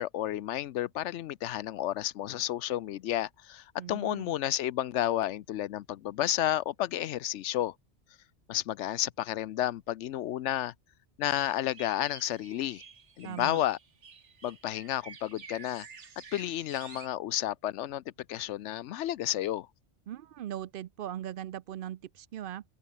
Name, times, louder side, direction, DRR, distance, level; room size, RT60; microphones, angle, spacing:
voice 1, 0.0-7.7 8.5-10.7 11.2-12.8 13.2-13.8 14.4-15.9 16.3-18.0 18.3-19.7, left 13 dB, 90° left, 0.9 m, -31 dB
voice 2, 3.8-4.3 13.2-13.6 20.1-22.6, right 11 dB, 60° right, 0.6 m, -39 dB
sound 1, 11.3-17.1, right 6 dB, 85° right, 1.9 m, -50 dB
omnidirectional pair, 1.2 m